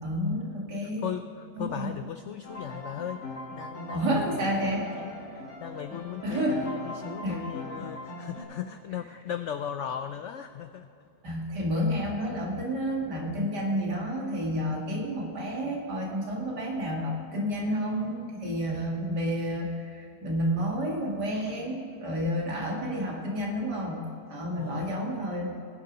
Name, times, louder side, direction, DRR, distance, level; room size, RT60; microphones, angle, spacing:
voice 1, 0.0-1.0 1.6-1.9 3.9-4.9 6.2-6.6 7.2-7.4 11.2-24.0 24.3-25.5, equal, 75° right, -3 dB, 2.7 m, -30 dB
voice 2, 0.8-10.9 24.6-24.9, left 9 dB, 85° left, 9 dB, 0.6 m, -38 dB
sound 1, 2.4-8.4, left 2 dB, 45° left, 2.3 m, -40 dB
19.5 x 6.7 x 5.1 m, 2.7 s
omnidirectional pair, 1.8 m